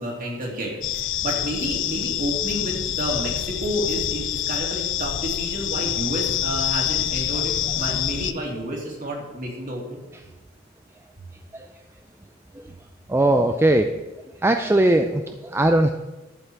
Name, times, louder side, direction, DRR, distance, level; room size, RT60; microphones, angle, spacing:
voice 1, 0.0-10.0, right 1 dB, 45° right, -2 dB, 2.7 m, -30 dB
sound 1, 0.8-8.3, left 12 dB, 65° left, 0.5 m, -26 dB
voice 2, 13.1-13.9 14.4-15.9, right 1 dB, 10° right, 6 dB, 0.4 m, -19 dB
11.5 x 8.1 x 4.6 m, 1.1 s
head